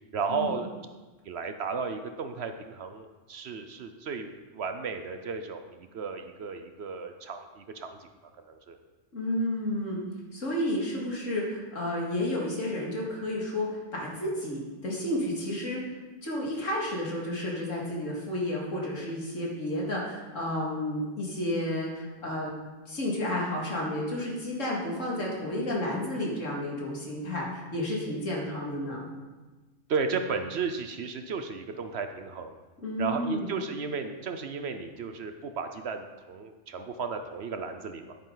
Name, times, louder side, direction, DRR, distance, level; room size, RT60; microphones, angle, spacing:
voice 1, 0.1-0.7 1.2-8.1 8.5-8.8 29.9-32.6 33.0-38.1, right 5 dB, 60° right, 7 dB, 0.9 m, -34 dB
voice 2, 9.1-10.0 10.3-15.8 16.2-22.5 22.9-29.1 32.8-33.5, left 1 dB, 75° left, -3 dB, 2.6 m, -31 dB
10.5 x 8.9 x 4.0 m, 1.2 s
omnidirectional pair, 1.3 m